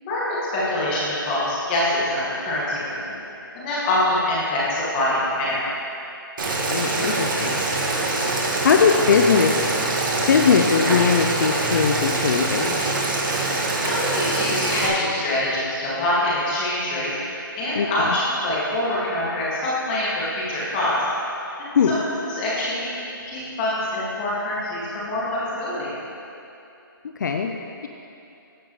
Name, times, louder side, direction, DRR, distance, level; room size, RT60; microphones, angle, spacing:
voice 1, 0.0-3.1 3.5-5.6 13.8-21.0 21.6-22.0 22.3-22.9 23.2-25.9, left 1 dB, 25° left, -8 dB, 2.0 m, -25 dB
Boiling, 6.4-14.9, right 2 dB, 60° right, 1.5 m, -24 dB
voice 2, 6.7-7.6 8.6-9.7 10.3-12.8 17.8-18.1 21.8-22.0 27.2-27.6, left 6 dB, 55° left, 4 dB, 0.4 m, -20 dB
14.5 x 5.2 x 3.1 m, 2.7 s
hypercardioid pair, 160°, 12 cm